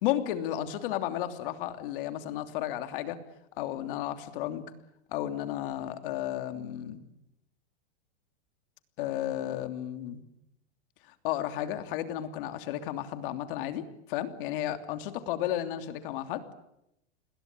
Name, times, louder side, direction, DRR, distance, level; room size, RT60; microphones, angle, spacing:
voice 1, 0.0-3.2 3.6-4.6 5.1-7.0 9.0-10.2 11.2-13.8 14.1-16.4, left 12 dB, 55° left, 8 dB, 3.0 m, -33 dB
29.5 x 22.0 x 9.0 m, 0.83 s
supercardioid pair, 160°, 33 cm